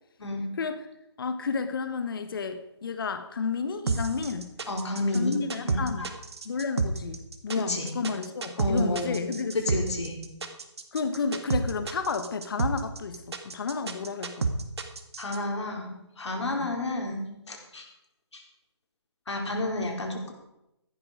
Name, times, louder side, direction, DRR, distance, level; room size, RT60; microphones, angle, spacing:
voice 1, 1.2-4.5 5.1-6.1 6.4-9.8 10.9-14.5 16.5-16.8, left 5 dB, 50° left, 9 dB, 1.2 m, -31 dB
sound 1, 3.9-15.4, right 4 dB, 65° right, 2.0 m, -30 dB
voice 2, 4.7-5.3 5.6-6.1 7.7-7.9 8.6-9.2 9.5-10.1 15.2-17.9 18.3-18.4 19.3-20.3, left 2 dB, 75° left, 1 dB, 4.7 m, -30 dB
15.0 x 12.0 x 5.1 m, 0.86 s
hypercardioid pair, 160°, 15 cm